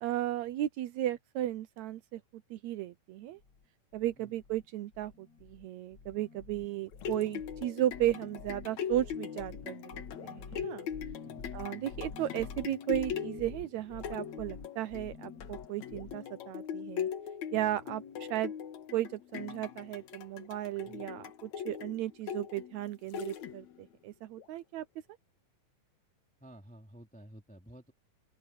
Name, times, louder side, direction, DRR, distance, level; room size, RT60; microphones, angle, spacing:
voice 1, 0.0-2.2 2.5-3.4 3.9-10.9 11.5-17.1 17.5-18.5 18.9-24.8, right 13 dB, 75° right, 1.7 m, -35 dB
sound 1, 3.4-3.6 3.9-4.7 4.9-5.7 5.9-16.2, left 5 dB, 45° left, 1.4 m, -48 dB
sound 2, 6.7-23.9 24.4-24.5, left 8 dB, 65° left, 2.5 m, -41 dB
voice 2, 11.2-11.5 20.8-21.1 26.4-27.9, equal, ahead, 2.8 m, -52 dB
open air
omnidirectional pair, 3.9 m